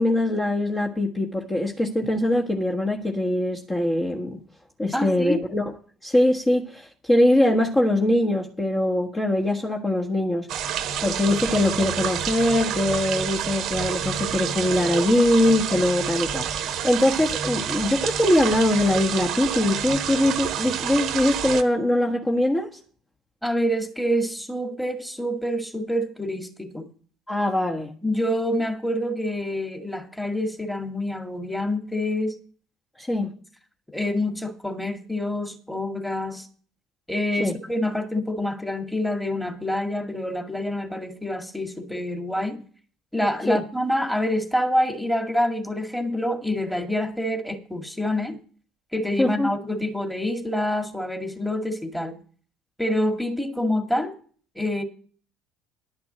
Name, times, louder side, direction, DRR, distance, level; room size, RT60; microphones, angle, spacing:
voice 1, 0.0-4.4 4.8-5.6 6.0-10.7 11.0-22.7 27.3-27.9 33.0-33.3 37.4-37.5 43.5-43.6 49.2-49.5, left 1 dB, 20° left, 1.5 m, -22 dB
voice 2, 4.9-5.5 23.4-26.9 28.0-32.4 33.9-36.5 37.1-42.6 43.1-48.4 48.9-52.2 52.8-54.1 54.6-54.8, left 1 dB, 5° left, 2.0 m, -27 dB
sound 1, 10.5-21.6, right 8 dB, 50° right, 1.0 m, -28 dB
11.0 x 5.9 x 7.7 m
figure-of-eight pair, 60°, 0 cm